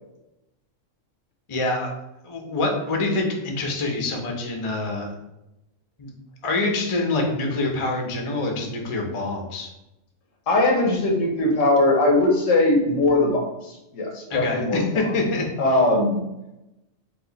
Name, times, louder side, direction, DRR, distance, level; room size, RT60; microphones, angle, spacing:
voice 1, 1.5-1.9 2.2-5.1 6.0-6.1 6.4-9.7 14.3-15.5, left 2 dB, 30° left, 1 dB, 0.6 m, -25 dB
voice 2, 10.5-14.9 15.6-16.2, left 2 dB, 80° left, 0 dB, 1.3 m, -20 dB
4.6 x 2.5 x 3.9 m, 0.93 s
omnidirectional pair, 1.3 m